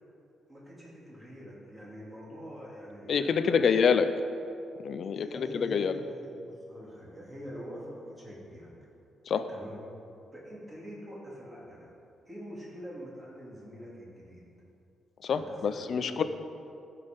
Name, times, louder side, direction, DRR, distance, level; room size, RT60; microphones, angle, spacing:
voice 1, 0.5-3.7 5.1-8.7 9.5-9.8 10.3-11.9 12.3-14.5 15.3-16.2, equal, 15° right, -5 dB, 2.9 m, -45 dB
voice 2, 3.1-4.1 4.8-6.0 9.3-9.4 15.2-16.2, left 6 dB, 50° left, 10 dB, 0.6 m, -26 dB
15.0 x 5.8 x 5.3 m, 2.6 s
cardioid pair, 140°, 0 cm